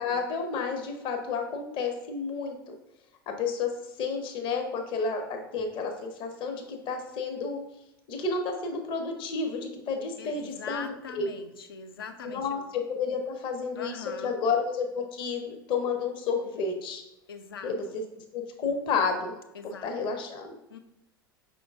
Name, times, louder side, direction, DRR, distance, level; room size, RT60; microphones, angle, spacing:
voice 1, 0.0-2.8 3.3-3.7 4.0-7.6 8.1-11.3 12.2-17.0 17.6-18.0 18.3-19.4 19.8-20.6, left 4 dB, 40° left, 4 dB, 0.7 m, -31 dB
voice 2, 10.2-12.5 13.8-14.4 17.3-18.0 19.5-20.2 20.7-20.8, left 5 dB, 75° left, 7 dB, 0.5 m, -42 dB
5.2 x 3.7 x 2.4 m, 0.87 s
figure-of-eight pair, 80°, 12 cm